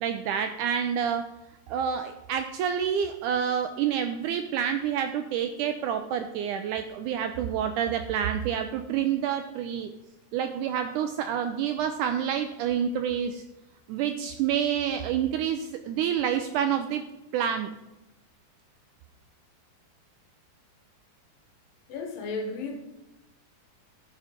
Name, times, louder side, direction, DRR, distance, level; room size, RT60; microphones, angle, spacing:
voice 1, 0.0-1.3 1.7-9.9 10.3-13.4 13.9-17.0 17.3-17.7, right 8 dB, 80° right, 7 dB, 1.8 m, -28 dB
voice 2, 21.9-22.8, left 3 dB, 75° left, 5 dB, 3.0 m, -33 dB
13.0 x 5.7 x 5.1 m, 0.95 s
omnidirectional pair, 4.1 m